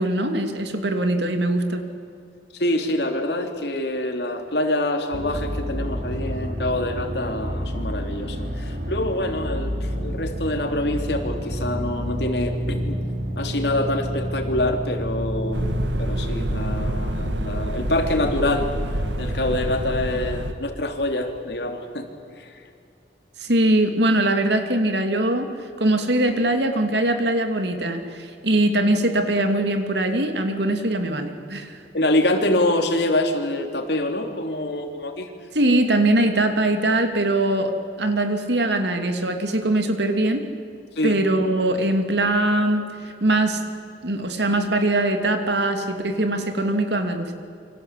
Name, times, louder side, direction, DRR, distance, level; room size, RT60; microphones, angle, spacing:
voice 1, 0.0-1.9 23.4-25.5 25.8-31.8 35.5-40.4 41.0-43.6 44.0-47.3, right 1 dB, 70° right, 6 dB, 2.8 m, -22 dB
voice 2, 2.5-13.0 13.4-15.7 16.0-18.7 19.2-22.1 22.4-22.6 31.9-35.3 41.0-41.2, left 1 dB, 70° left, 4 dB, 3.4 m, -25 dB
sound 1, 5.1-20.8 21.2-21.3, equal, 50° right, 3.1 m, -30 dB
sound 2, 15.5-20.5, right 1 dB, 90° right, 2.0 m, -27 dB
28.5 x 25.0 x 8.4 m, 2.4 s
head